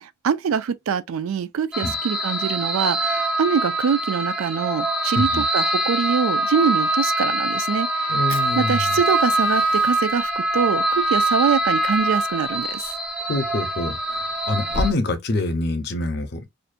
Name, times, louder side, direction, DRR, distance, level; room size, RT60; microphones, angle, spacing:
voice 1, 0.0-8.2 8.6-12.9, right 6 dB, 85° right, 0.3 m, -24 dB
sound 1, 1.7-14.9, right 1 dB, 5° right, 0.3 m, -23 dB
voice 2, 8.1-9.0 13.3-16.4, left 2 dB, 50° left, 0.6 m, -26 dB
Fire, 8.3-14.9, equal, 70° right, 0.9 m, -37 dB
2.5 x 2.1 x 2.4 m
head